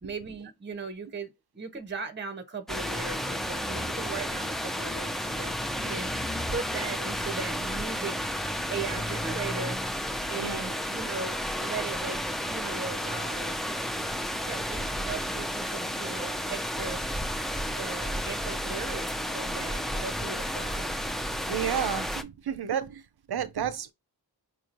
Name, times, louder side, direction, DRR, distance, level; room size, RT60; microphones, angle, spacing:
voice 1, 0.0-6.1 6.5-8.2 8.7-9.8 10.3-12.2 12.5-13.7 14.4-17.0 17.7-21.0, right 4 dB, 30° right, 0.7 m, -38 dB
sound 1, 2.7-22.2, equal, ahead, 0.5 m, -32 dB
voice 2, 10.4-10.8 21.5-23.0 23.3-23.9, right 8 dB, 75° right, 0.6 m, -31 dB
4.8 x 3.0 x 2.5 m
wide cardioid pair, 55°, 39 cm